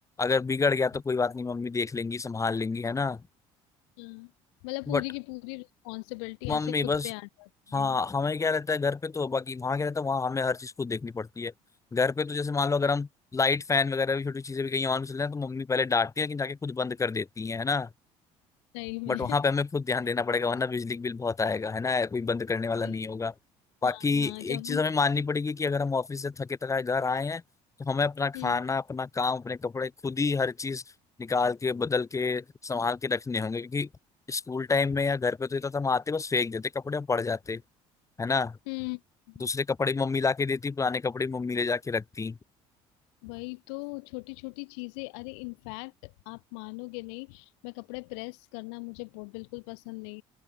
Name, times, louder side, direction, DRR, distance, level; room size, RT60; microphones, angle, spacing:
voice 1, 0.2-3.2 4.9-5.0 6.5-7.1 7.7-11.5 11.9-17.9 19.1-23.3 23.8-27.4 27.8-30.8 31.2-33.9 34.3-37.6 38.2-38.6 39.4-42.4, left 4 dB, 25° left, 1.8 m, -28 dB
voice 2, 4.0-4.3 4.6-8.0 18.7-19.4 22.8-23.0 23.8-24.8 28.3-28.6 38.7-39.0 39.3-39.5 43.2-50.2, left 34 dB, 85° left, 4.2 m, -39 dB
open air
supercardioid pair, 90°, 13 cm